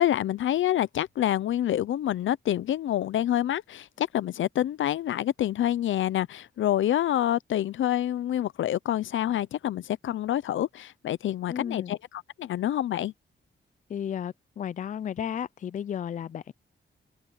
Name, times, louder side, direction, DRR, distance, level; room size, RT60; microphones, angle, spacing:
voice 1, 0.0-13.1, left 12 dB, 90° left, 0.5 m, -27 dB
voice 2, 11.5-11.9 13.9-16.5, left 9 dB, 40° left, 0.4 m, -33 dB
open air
wide cardioid pair, 120°, 19 cm